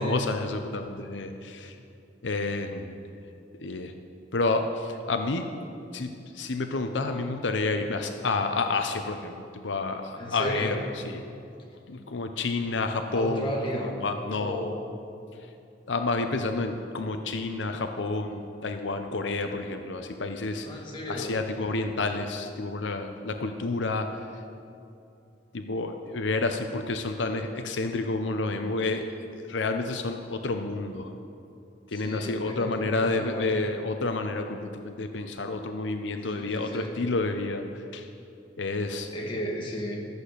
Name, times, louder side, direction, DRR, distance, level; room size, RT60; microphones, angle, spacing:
voice 1, 0.0-1.8 2.2-3.0 3.6-3.9 4.3-5.5 5.9-11.2 11.9-14.7 15.9-20.7 21.1-24.3 25.5-29.1 29.3-31.1 31.9-38.1 38.6-39.1, left 3 dB, 90° left, 6 dB, 0.7 m, -30 dB
voice 2, 10.2-10.8 13.1-14.0 14.3-14.9 20.6-21.4 31.9-33.7 36.4-36.9 39.1-40.1, equal, 30° left, -1 dB, 1.8 m, -34 dB
14.0 x 8.2 x 6.6 m, 2.6 s
head